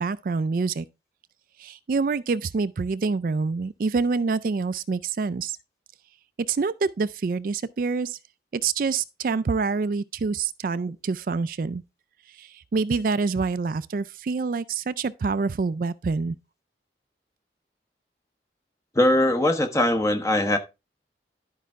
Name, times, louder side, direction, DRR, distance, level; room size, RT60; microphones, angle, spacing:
voice 1, 0.0-0.8 1.6-5.6 6.5-8.2 8.5-11.8 12.3-16.3, right 4 dB, 50° right, 0.3 m, -26 dB
voice 2, 18.9-20.6, left 1 dB, 15° left, 1.1 m, -21 dB
11.5 x 5.5 x 3.5 m
head